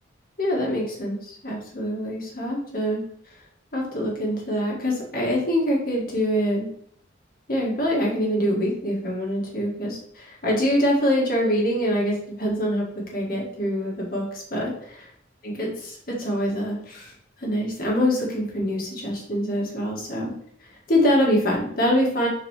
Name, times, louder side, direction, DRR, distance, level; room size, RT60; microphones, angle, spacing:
voice 1, 0.4-3.0 3.7-6.7 7.5-12.8 13.1-15.1 15.4-17.1 17.4-20.3 20.9-22.3, equal, 50° left, -3 dB, 1.9 m, -24 dB
6.6 x 4.7 x 3.2 m, 0.67 s
head